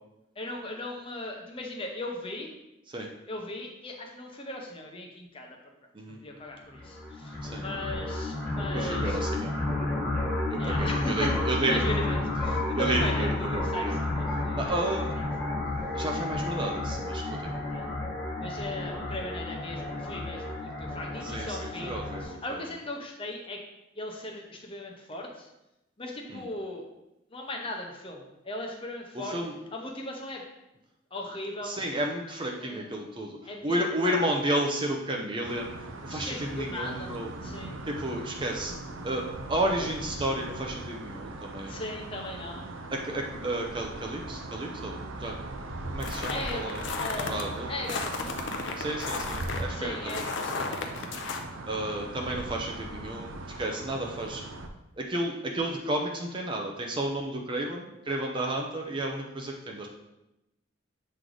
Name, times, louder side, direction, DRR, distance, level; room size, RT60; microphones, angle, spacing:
voice 1, 0.4-2.5 3.3-5.6 6.2-9.2 10.6-11.3 11.6-15.0 17.7-17.9 18.4-23.6 24.0-25.5 26.0-26.8 27.3-29.4 29.7-30.4 31.1-31.8 32.6-33.1 33.4-33.8 34.1-34.2 36.1-37.8 41.7-42.8 46.3-48.5 49.7-51.2, left 1 dB, 25° left, 1 dB, 0.8 m, -38 dB
sound 1, 6.7-22.2, left 2 dB, 10° left, 1.3 m, -31 dB
voice 2, 8.7-9.6 10.5-12.0 12.7-14.1 14.6-15.1 15.9-17.6 21.2-22.4 26.3-26.4 29.1-29.5 31.6-33.4 33.6-35.7 36.0-37.3 37.9-38.8 39.0-41.8 42.9-45.4 45.9-46.8 47.1-47.7 48.8-50.2 51.7-54.4 55.0-59.9, right 1 dB, 25° right, 1 dB, 0.6 m, -32 dB
sound 2, 35.4-54.7, right 2 dB, 75° right, 0.6 m, -39 dB
sound 3, 46.0-47.4 47.9-51.4, left 4 dB, 60° left, 0.6 m, -34 dB
7.4 x 3.3 x 3.9 m, 0.92 s
head